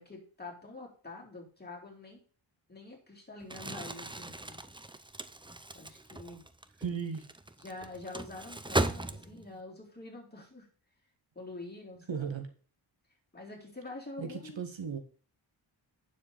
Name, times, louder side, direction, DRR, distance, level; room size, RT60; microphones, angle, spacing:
voice 1, 0.0-2.2 2.7-4.6 5.7-6.4 7.6-10.7 11.4-12.2 13.3-14.6, left 2 dB, 20° left, -2 dB, 4.2 m, -46 dB
Crumpling crinkling, 3.4-9.6, right 2 dB, 10° right, 0.7 m, -37 dB
voice 2, 6.8-7.3 12.1-12.5 14.2-15.0, right 6 dB, 65° right, 6 dB, 1.9 m, -36 dB
9.2 x 7.4 x 4.1 m, 0.40 s
wide cardioid pair, 80°, 49 cm